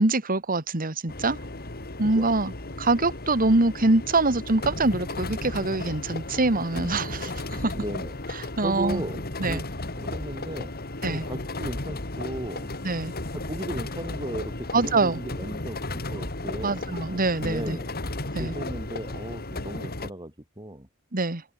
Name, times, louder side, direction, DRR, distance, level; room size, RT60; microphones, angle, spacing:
voice 1, 0.0-1.4 2.0-2.5 2.8-7.7 8.3-9.0 9.4-9.6 11.0-11.3 12.8-13.1 14.7-15.2 16.6-17.8 18.3-18.6 21.1-21.4, right 2 dB, 40° right, 2.0 m, -24 dB
sound 1, 1.1-20.1, left 2 dB, 45° left, 3.5 m, -34 dB
voice 2, 7.7-8.2 8.6-9.6 10.0-10.7 11.1-12.7 13.3-16.8 17.4-17.9 18.4-20.9, right 1 dB, 20° right, 7.7 m, -36 dB
head